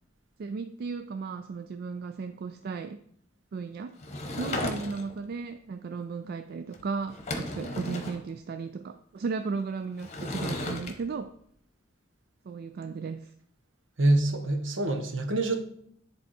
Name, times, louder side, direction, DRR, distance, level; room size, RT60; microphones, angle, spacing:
voice 1, 0.4-3.0 3.5-3.9 4.4-11.3 12.5-13.3, right 4 dB, 50° right, 0.3 m, -35 dB
Sliding door / Wood, 4.0-5.2 6.7-6.8 7.1-8.2 10.0-10.9, left 1 dB, 35° left, 1.0 m, -34 dB
voice 2, 14.0-15.6, right 2 dB, 70° right, 1.0 m, -25 dB
10.0 x 3.5 x 4.3 m
head